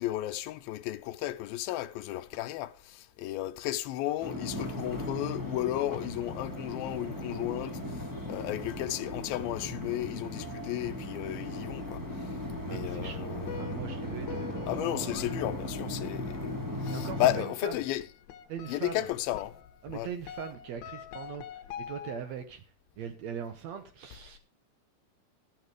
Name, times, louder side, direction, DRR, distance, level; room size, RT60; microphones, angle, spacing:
voice 1, 0.0-12.4 12.6-13.7 14.7-16.5 16.8-18.0 18.7-19.6 19.9-20.1, left 14 dB, 85° left, 2.5 m, -34 dB
sound 1, 4.2-17.4, left 1 dB, 25° right, 0.4 m, -37 dB
voice 2, 12.7-15.1 16.9-17.7 18.5-19.1 19.8-22.6 23.0-24.4, right 8 dB, 75° right, 1.6 m, -40 dB
sound 2, 13.5-22.4, left 9 dB, 70° left, 1.8 m, -46 dB
13.0 x 6.8 x 4.8 m
omnidirectional pair, 4.3 m